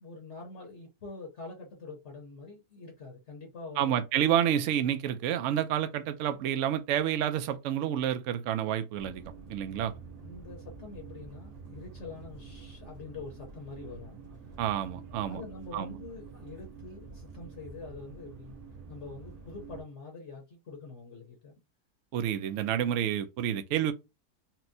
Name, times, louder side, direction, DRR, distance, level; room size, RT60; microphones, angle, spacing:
voice 1, 0.0-4.0 10.2-14.2 15.3-18.6 18.9-21.5, left 3 dB, 55° left, 1.1 m, -45 dB
voice 2, 3.8-9.2 9.5-9.9 14.6-15.4 15.7-16.0 22.1-23.9, right 10 dB, 70° right, 0.8 m, -29 dB
sound 1, 8.9-19.8, right 4 dB, 55° right, 1.1 m, -47 dB
4.3 x 2.1 x 2.6 m
omnidirectional pair, 1.7 m